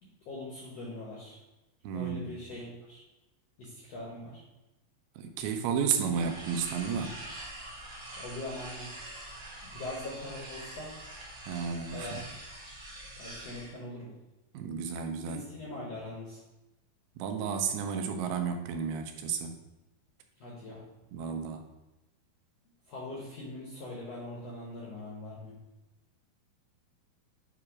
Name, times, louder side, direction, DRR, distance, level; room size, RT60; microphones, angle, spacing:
voice 1, 0.0-1.4 1.9-3.0 3.6-4.4 8.1-8.9 9.6-10.9 11.9-12.2 13.2-14.1 15.3-16.4 20.4-20.8 22.9-25.5, left 1 dB, 70° left, -5 dB, 1.5 m, -42 dB
voice 2, 1.8-2.3 5.2-7.2 11.5-12.2 14.5-15.4 17.2-19.5 21.1-21.6, right 6 dB, 85° right, 5 dB, 2.6 m, -32 dB
sound 1, 6.1-13.7, right 1 dB, 55° right, 0.9 m, -45 dB
7.5 x 3.0 x 4.7 m, 0.99 s
omnidirectional pair, 4.4 m